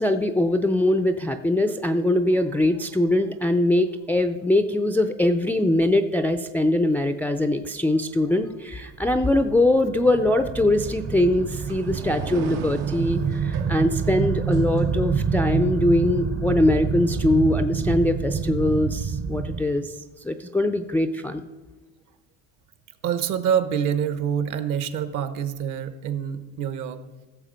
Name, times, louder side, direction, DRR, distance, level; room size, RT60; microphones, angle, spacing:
voice 1, 0.0-19.9 20.2-21.4, left 1 dB, 5° left, 6 dB, 0.3 m, -22 dB
sound 1, 8.8-19.6, right 6 dB, 30° right, 0.7 m, -27 dB
sound 2, 10.7-15.4, right 7 dB, 85° right, 1.2 m, -40 dB
voice 2, 23.0-27.0, right 8 dB, 55° right, 12 dB, 1.0 m, -26 dB
15.5 x 6.8 x 5.1 m, 1.2 s
cardioid pair, 130°, 36 cm